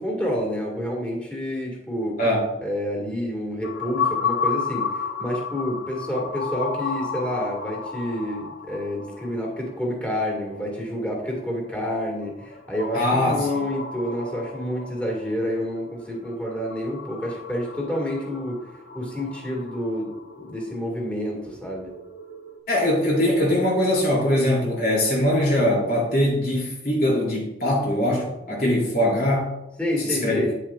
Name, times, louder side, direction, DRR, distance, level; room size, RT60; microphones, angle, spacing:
voice 1, 0.0-2.2 2.6-18.6 18.9-20.1 20.4-21.9 29.8-30.6, equal, 5° left, -2 dB, 1.8 m, -28 dB
voice 2, 2.2-2.5 12.9-13.4 22.7-29.5 30.0-30.4, left 1 dB, 55° left, -2 dB, 2.7 m, -22 dB
sound 1, 3.6-22.6, left 5 dB, 90° left, 0.8 m, -33 dB
9.3 x 7.4 x 2.4 m, 0.92 s
head